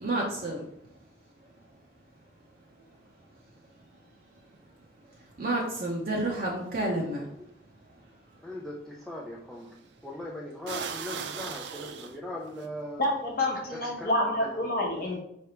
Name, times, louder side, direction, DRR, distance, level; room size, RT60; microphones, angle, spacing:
voice 1, 0.0-0.7 5.4-7.3, right 2 dB, 50° right, -3 dB, 0.7 m, -29 dB
sound 1, 7.3-7.4 9.6-9.9 10.7-12.7, right 6 dB, 65° right, 0.4 m, -37 dB
voice 2, 8.4-9.7 10.0-13.1 13.7-14.7, left 1 dB, ahead, -5 dB, 0.4 m, -40 dB
voice 3, 13.0-15.2, left 1 dB, 50° left, -1 dB, 0.8 m, -28 dB
5.2 x 3.3 x 2.9 m, 0.76 s
head